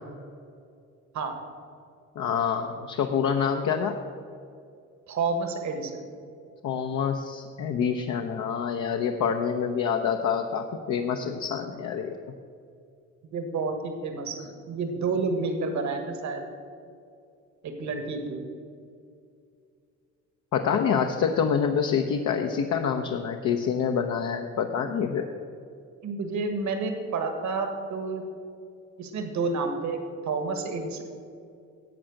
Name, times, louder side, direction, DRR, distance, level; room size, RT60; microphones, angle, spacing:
voice 1, 2.2-4.0 6.6-12.1 20.5-25.3, left 7 dB, 70° left, 4 dB, 0.8 m, -26 dB
voice 2, 5.1-6.0 13.3-16.4 17.6-18.5 26.0-28.2 29.0-30.0 30.2-31.0, right 4 dB, 70° right, 6 dB, 1.6 m, -30 dB
12.0 x 7.9 x 6.5 m, 2.4 s
cardioid pair, 90°, 30 cm